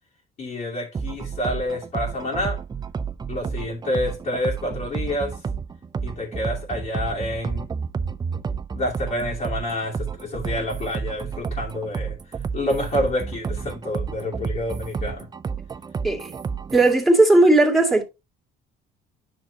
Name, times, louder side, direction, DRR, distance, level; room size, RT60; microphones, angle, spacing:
voice 1, 0.4-2.6 3.3-5.4 6.0-7.7 8.7-15.3, left 1 dB, 50° left, 2.8 m, -28 dB
sound 1, 0.9-16.9, right 6 dB, 25° right, 0.5 m, -31 dB
voice 2, 16.7-18.0, right 2 dB, ahead, 2.4 m, -16 dB
9.6 x 6.2 x 2.9 m
cardioid pair, 110°, 17 cm